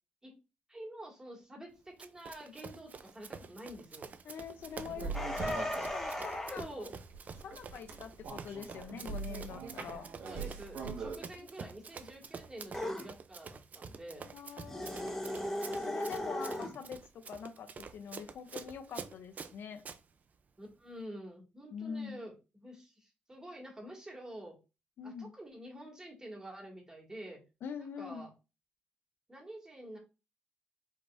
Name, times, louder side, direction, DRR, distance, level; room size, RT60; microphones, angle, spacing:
voice 1, 0.7-4.1 6.6-7.0 10.2-14.3 20.6-24.6 25.0-27.4 27.8-28.3 29.3-30.0, right 1 dB, 20° right, -1 dB, 2.1 m, -48 dB
Run, 2.0-20.0, right 5 dB, 45° right, 0.5 m, -48 dB
voice 2, 4.2-6.9 7.4-10.1 11.4-11.5 14.3-15.1 15.8-19.8 21.7-22.2 25.0-25.3 27.6-28.3, left 7 dB, 70° left, 8 dB, 0.7 m, -44 dB
sound 1, 4.6-11.2, right 4 dB, 75° right, 1.4 m, -43 dB
sound 2, 5.1-6.7 12.7-13.1 14.6-16.7, left 1 dB, 10° left, 1.2 m, -36 dB
5.2 x 3.9 x 2.6 m, 0.29 s
cardioid pair, 95°, 4 cm